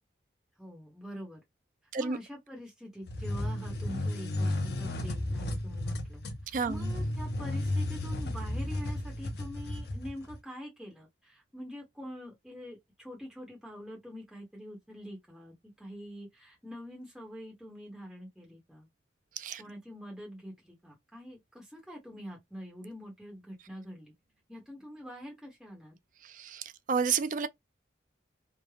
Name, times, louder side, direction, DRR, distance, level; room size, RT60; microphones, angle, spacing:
voice 1, 0.6-1.4 2.0-18.9 19.6-24.1 24.5-26.0, equal, ahead, 0.8 m, -45 dB
sound 1, 3.1-10.4, left 1 dB, 60° left, 0.6 m, -33 dB
voice 2, 6.5-6.9 19.4-19.6 26.2-27.5, right 5 dB, 45° right, 0.3 m, -31 dB
3.2 x 2.0 x 2.2 m
head